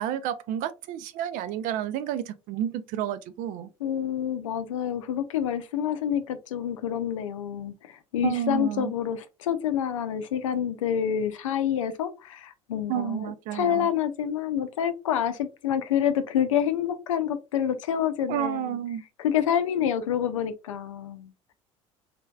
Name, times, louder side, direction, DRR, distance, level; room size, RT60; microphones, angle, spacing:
voice 1, 0.0-3.7 8.2-8.9 12.9-13.9 18.3-19.0, right 11 dB, 50° right, 0.4 m, -30 dB
voice 2, 3.8-18.8 19.2-21.3, left 9 dB, 75° left, 0.5 m, -28 dB
3.3 x 3.1 x 2.3 m
figure-of-eight pair, 65°, 17 cm